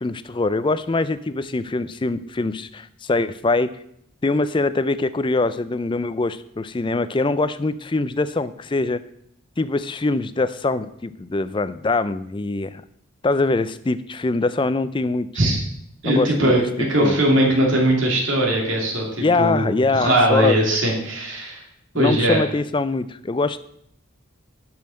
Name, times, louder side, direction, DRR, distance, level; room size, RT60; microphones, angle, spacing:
voice 1, 0.0-3.7 4.2-9.0 9.6-12.8 13.2-15.3 16.1-17.2 19.2-20.6 21.9-23.6, left 3 dB, 25° left, 14 dB, 0.4 m, -23 dB
voice 2, 16.0-21.6 21.9-22.4, right 1 dB, 60° right, -1 dB, 2.8 m, -20 dB
10.5 x 5.6 x 6.3 m, 0.73 s
head